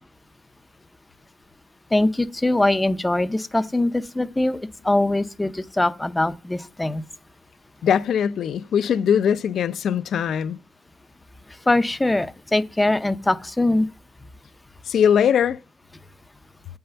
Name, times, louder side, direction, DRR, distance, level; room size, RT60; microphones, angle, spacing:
voice 1, 1.9-4.6 4.8-7.0 11.7-13.9, left 2 dB, 10° left, 0.5 m, -22 dB
voice 2, 7.8-10.6 14.9-15.6, left 8 dB, 55° left, 0.5 m, -21 dB
8.6 x 5.6 x 6.8 m
cardioid pair, 145°, 0 cm